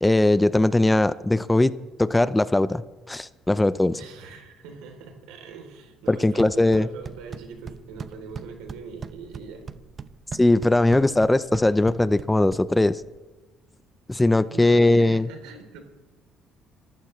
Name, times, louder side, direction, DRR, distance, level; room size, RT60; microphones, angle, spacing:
voice 1, 0.0-1.7 2.0-2.8 3.1-3.9 6.1-6.9 10.3-13.0 14.1-15.3, left 2 dB, 10° left, 15 dB, 0.6 m, -20 dB
voice 2, 3.9-9.6 14.5-15.8, right 5 dB, 85° right, 4 dB, 3.4 m, -42 dB
sound 1, 6.2-13.2, right 6 dB, 40° right, 0.8 m, -41 dB
29.0 x 15.0 x 3.2 m, 1.2 s
supercardioid pair, 80°, 0 cm